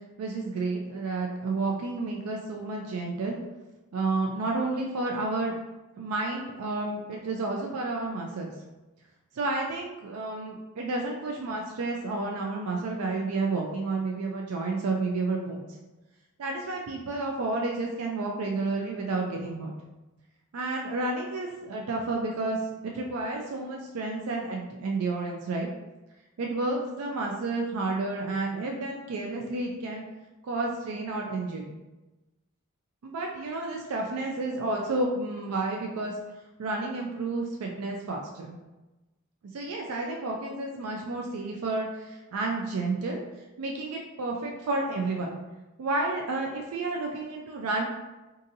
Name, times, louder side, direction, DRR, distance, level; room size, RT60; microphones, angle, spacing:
voice 1, 0.2-3.4 3.9-5.5 6.0-8.5 9.3-15.7 16.4-19.7 20.5-22.6 22.8-25.7 26.4-30.0 30.4-31.8 33.0-36.1 36.6-38.6 39.5-45.4 45.8-47.8, right 3 dB, 85° right, 0 dB, 0.4 m, -31 dB
3.9 x 2.6 x 2.6 m, 1.1 s
head